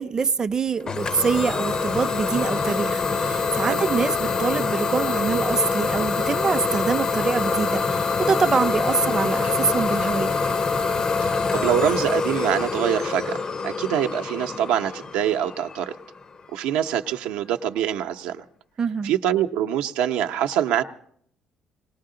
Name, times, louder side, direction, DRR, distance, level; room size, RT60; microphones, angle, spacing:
voice 1, 0.0-10.4 18.8-19.1, right 5 dB, 30° right, 0.5 m, -25 dB
Idling / Domestic sounds home sounds, 0.9-16.4, left 4 dB, 35° left, 0.5 m, -25 dB
voice 2, 11.2-16.0 16.5-18.4 19.0-20.8, right 10 dB, 90° right, 0.6 m, -24 dB
20.0 x 18.5 x 3.8 m
cardioid pair, 90°, 2 cm